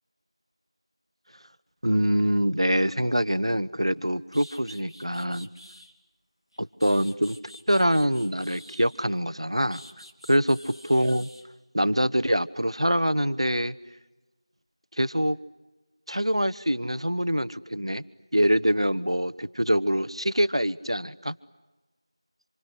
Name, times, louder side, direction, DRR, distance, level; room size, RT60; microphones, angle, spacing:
voice 1, 1.8-5.5 6.6-7.4 7.7-9.8 10.3-10.6 10.8-11.3 11.7-13.8 15.0-15.4 16.1-18.0 18.3-21.4, equal, 70° right, 13 dB, 1.1 m, -24 dB
sound 1, 3.9-4.0 4.3-5.9 6.5-9.2 9.7-11.5, equal, 60° left, 2.8 m, -49 dB
26.5 x 26.0 x 8.3 m, 1.1 s
figure-of-eight pair, 180°, 3 cm